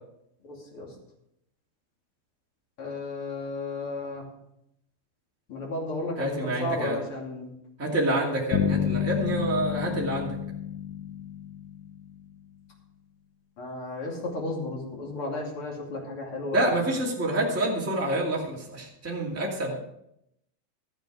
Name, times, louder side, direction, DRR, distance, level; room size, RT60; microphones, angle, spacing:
voice 1, 0.4-0.9 2.8-4.3 5.5-7.5 13.6-16.9, left 2 dB, 45° left, -1 dB, 3.6 m, -34 dB
voice 2, 6.2-7.0 7.8-10.4 16.5-19.8, right 1 dB, 5° right, -3 dB, 2.1 m, -27 dB
sound 1, 8.5-12.2, left 10 dB, 75° left, 2.0 m, -30 dB
13.5 x 9.2 x 5.0 m, 0.79 s
omnidirectional pair, 3.4 m